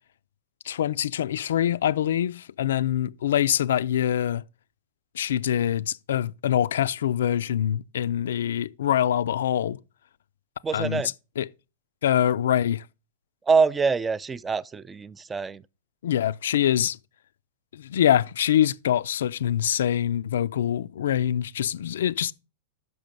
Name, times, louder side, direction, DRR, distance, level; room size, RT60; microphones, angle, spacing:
voice 1, 0.7-4.4 5.1-9.8 10.7-11.0 11.4-11.5 12.0-12.8 16.0-17.0 17.7-22.3, left 10 dB, 75° left, 0.3 m, -24 dB
voice 2, 10.6-11.1 13.4-15.6, right 5 dB, 15° right, 0.3 m, -25 dB
6.3 x 5.7 x 5.2 m
hypercardioid pair, 115°, 0 cm